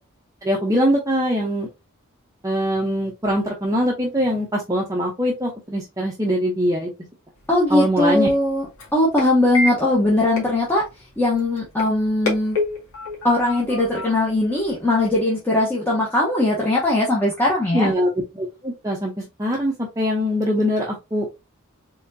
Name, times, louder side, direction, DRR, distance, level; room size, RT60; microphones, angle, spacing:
voice 1, 0.4-1.7 2.4-6.9 7.7-8.3 17.7-21.3, equal, 15° right, 0.8 m, -22 dB
sound 1, 7.4-15.2, left 2 dB, 70° left, 2.0 m, -32 dB
voice 2, 7.5-10.9 11.2-12.6 13.2-17.9, left 1 dB, 10° left, 1.0 m, -20 dB
4.2 x 3.7 x 2.7 m
head